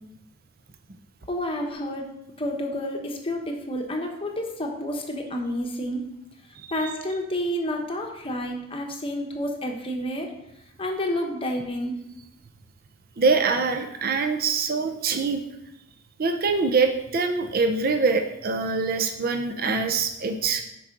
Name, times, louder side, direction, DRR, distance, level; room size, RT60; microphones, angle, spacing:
voice 1, 1.3-2.1 2.4-6.1 6.7-10.3 10.8-11.9, equal, 25° left, 2 dB, 0.9 m, -29 dB
voice 2, 6.6-6.9 13.2-15.4 16.2-20.6, right 4 dB, 45° right, 6 dB, 0.6 m, -24 dB
6.2 x 4.7 x 5.9 m, 0.84 s
head